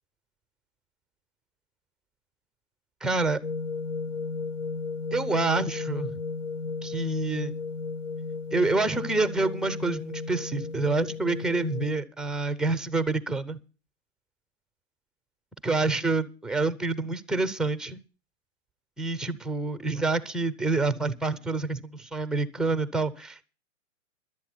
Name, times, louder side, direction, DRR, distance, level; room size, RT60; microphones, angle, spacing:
voice 1, 3.0-3.4 5.1-6.2 6.8-7.5 8.5-13.6 15.6-18.0 19.0-23.4, right 3 dB, ahead, 13 dB, 0.7 m, -27 dB
sound 1, 3.4-11.9, left 4 dB, 65° left, 0.9 m, -34 dB
11.5 x 8.5 x 7.8 m, 0.35 s
hypercardioid pair, 110°, 39 cm